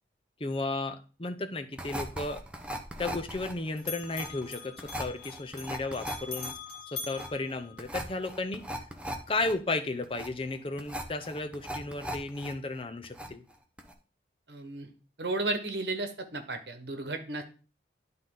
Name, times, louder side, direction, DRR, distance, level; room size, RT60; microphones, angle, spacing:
voice 1, 0.4-2.4 3.0-6.5 6.9-8.8 9.3-13.4, left 2 dB, 30° left, 8 dB, 0.6 m, -34 dB
sound 1, 1.8-12.5 12.8-13.5 13.8-13.9, equal, 5° right, 0.8 m, -39 dB
Bell, 2.2-3.5 3.8-8.3, left 4 dB, 90° left, 1.9 m, -43 dB
voice 2, 14.5-14.9 15.2-17.4, right 2 dB, 75° right, 6 dB, 1.3 m, -33 dB
11.5 x 3.9 x 3.8 m, 0.35 s
head